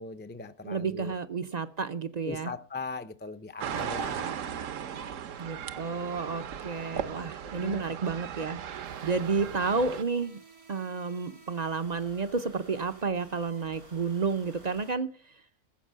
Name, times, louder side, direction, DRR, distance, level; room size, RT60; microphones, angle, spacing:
voice 1, 0.0-1.1 2.3-4.3 7.4-7.8, left 3 dB, 15° left, 0.4 m, -39 dB
voice 2, 0.6-2.5 5.4-10.4 10.7-15.1, right 4 dB, 45° right, 0.6 m, -31 dB
sound 1, 3.6-10.0, right 8 dB, 65° right, 1.1 m, -37 dB
sound 2, 8.8-14.9, right 2 dB, 90° right, 5.0 m, -54 dB
14.5 x 7.4 x 7.4 m
omnidirectional pair, 1.5 m